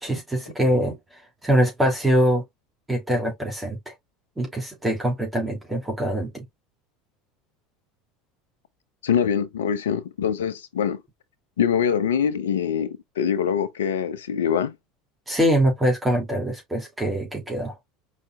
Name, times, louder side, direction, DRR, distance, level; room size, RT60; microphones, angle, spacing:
voice 1, 0.0-1.0 1.4-2.4 2.9-3.9 4.4-6.4 15.3-17.7, equal, 10° right, 2.6 m, -23 dB
voice 2, 9.0-11.0 11.6-14.8, left 8 dB, 75° left, 0.8 m, -24 dB
5.1 x 4.3 x 2.3 m
hypercardioid pair, 75°, 0 cm